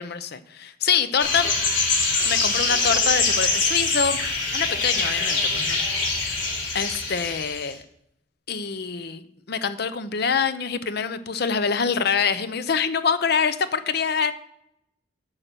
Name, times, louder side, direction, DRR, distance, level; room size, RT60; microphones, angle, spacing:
voice 1, 0.0-1.5 2.3-4.2 4.5-5.8 6.3-7.8 8.5-14.3, left 6 dB, 55° left, 13 dB, 0.7 m, -25 dB
sound 1, 1.2-7.7, left 3 dB, 75° left, 2.9 m, -24 dB
8.9 x 5.7 x 6.7 m, 0.82 s
head